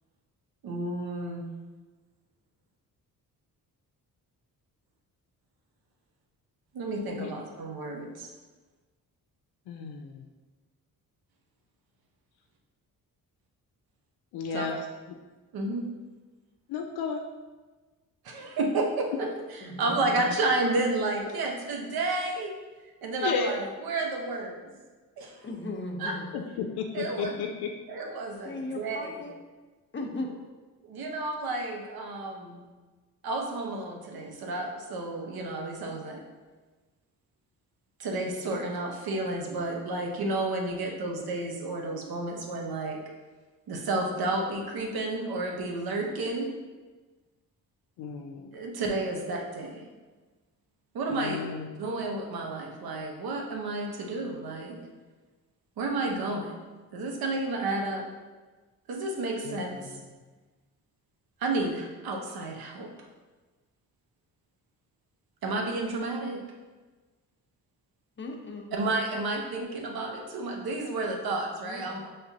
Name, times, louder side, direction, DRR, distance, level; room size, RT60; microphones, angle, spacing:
voice 1, 0.6-1.4 6.7-8.3 14.5-14.7 15.5-15.9 18.2-22.6 23.0-24.7 25.2-25.5 26.0-26.1 26.9-27.3 27.9-29.1 30.8-32.6 33.2-36.2 38.0-43.0 43.7-46.5 48.5-49.9 50.9-51.4 51.8-54.8 55.8-56.6 56.9-58.1 58.9-60.0 61.4-63.1 65.4-66.4 68.7-72.1, right 2 dB, 75° right, 1 dB, 0.9 m, -31 dB
voice 2, 9.7-10.3 14.3-14.8 16.7-17.2 23.2-23.5 26.3-27.7 48.0-48.6 51.1-51.8 59.4-60.0, left 6 dB, 90° left, 3 dB, 0.5 m, -33 dB
voice 3, 19.6-20.3 25.4-26.4 28.4-29.3 29.9-30.3 68.2-68.7 71.7-71.9, left 2 dB, 30° left, 1 dB, 0.8 m, -37 dB
5.8 x 3.2 x 2.8 m, 1.3 s
cardioid pair, 70°, 37 cm